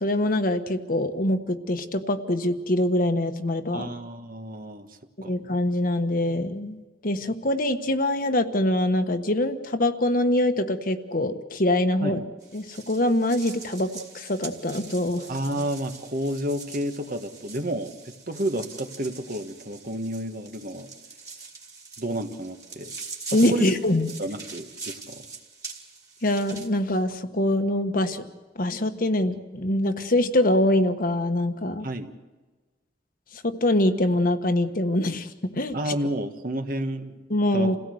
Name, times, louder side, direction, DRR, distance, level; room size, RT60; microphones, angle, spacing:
voice 1, 0.0-3.9 5.2-12.2 12.5-13.9 14.1-15.2 23.3-24.1 26.2-28.2 28.6-31.9 33.4-35.3 35.6-35.7 37.3-37.8, left 1 dB, 50° left, 7 dB, 1.3 m, -24 dB
voice 2, 3.7-4.9 5.2-5.3 12.0-12.1 15.3-20.9 22.0-22.9 23.3-23.7 24.2-25.2 31.8-32.1 35.7-37.2 37.5-37.8, right 1 dB, 50° right, 7 dB, 1.6 m, -31 dB
sound 1, 12.4-26.7, right 4 dB, 20° right, 2.5 m, -43 dB
28.0 x 16.5 x 7.9 m, 1.3 s
head